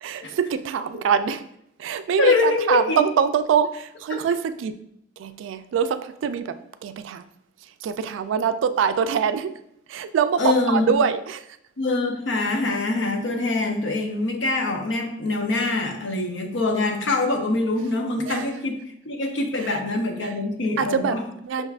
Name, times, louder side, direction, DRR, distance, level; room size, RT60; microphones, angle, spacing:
voice 1, 0.0-1.4 1.8-4.8 5.2-7.3 7.8-9.5 9.9-11.5 13.3-13.4 18.3-18.5 19.6-19.8 20.2-20.3 20.8-21.7, right 7 dB, 85° right, 12 dB, 0.3 m, -24 dB
voice 2, 2.2-3.0 4.1-4.2 10.4-10.9 11.8-21.2, left 3 dB, 80° left, 3 dB, 0.7 m, -24 dB
5.6 x 3.4 x 2.4 m, 0.74 s
head